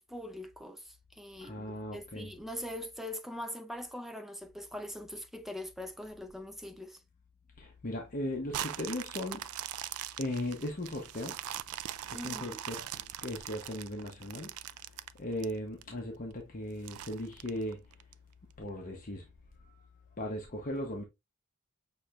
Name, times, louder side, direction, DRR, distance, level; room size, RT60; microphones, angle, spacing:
voice 1, 0.0-7.0 12.1-12.7, left 1 dB, ahead, 0.5 m, -42 dB
voice 2, 1.4-2.3 7.6-9.4 10.2-11.4 12.2-14.5 15.2-17.8 18.6-19.2 20.2-21.0, left 1 dB, 40° left, 0.8 m, -37 dB
sound 1, 8.5-15.8 16.3-16.4 16.9-18.1 18.7-18.8, right 12 dB, 70° right, 0.3 m, -41 dB
6.4 x 3.2 x 2.4 m
head